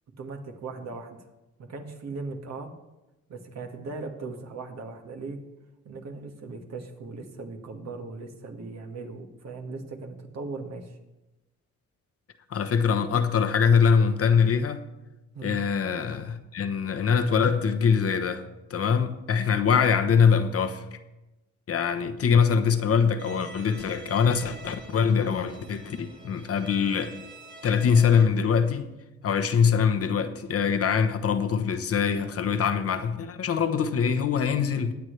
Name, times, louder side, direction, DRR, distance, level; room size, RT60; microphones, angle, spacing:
voice 1, 0.2-1.2 1.6-2.7 3.3-5.4 5.8-11.0 15.3-15.6, right 3 dB, 60° right, 1.8 m, -38 dB
voice 2, 12.5-14.8 15.4-18.4 18.7-20.8 21.7-27.1 27.6-28.9 29.2-34.9, left 6 dB, 50° left, 1.0 m, -23 dB
Bowed string instrument, 23.2-28.2, right 2 dB, 30° right, 3.2 m, -47 dB
21.5 x 8.2 x 3.3 m
cardioid pair, 90°, 30 cm